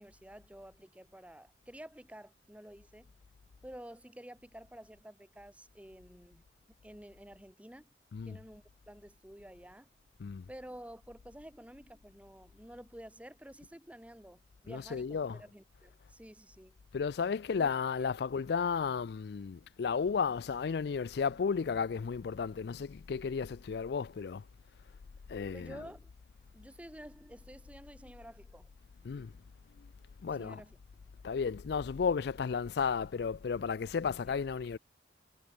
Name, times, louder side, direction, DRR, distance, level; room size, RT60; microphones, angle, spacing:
voice 1, 0.0-3.1 3.6-6.4 6.8-7.9 8.2-9.9 10.5-16.8 17.6-17.7 17.9-18.1 25.5-26.1 26.5-28.7 30.3-30.8 34.2-34.4, right 1 dB, 10° right, 1.5 m, -51 dB
voice 2, 14.7-15.4 16.9-24.4 25.3-25.8 29.0-29.3 30.2-30.6 31.2-34.8, left 6 dB, 60° left, 0.4 m, -33 dB
head